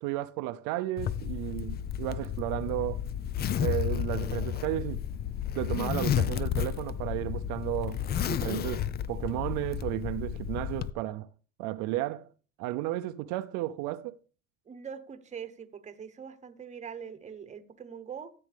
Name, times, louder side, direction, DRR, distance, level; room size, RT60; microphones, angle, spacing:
voice 1, 0.0-3.0 3.6-5.0 5.5-8.0 8.3-11.3 11.6-12.3 12.6-14.2, right 15 dB, 70° right, 0.7 m, -33 dB
Zipper (clothing), 1.0-10.9, left 10 dB, 30° left, 0.5 m, -32 dB
voice 2, 14.7-18.3, right 7 dB, 20° right, 1.1 m, -43 dB
14.0 x 7.8 x 3.5 m
cardioid pair, 125°, 32 cm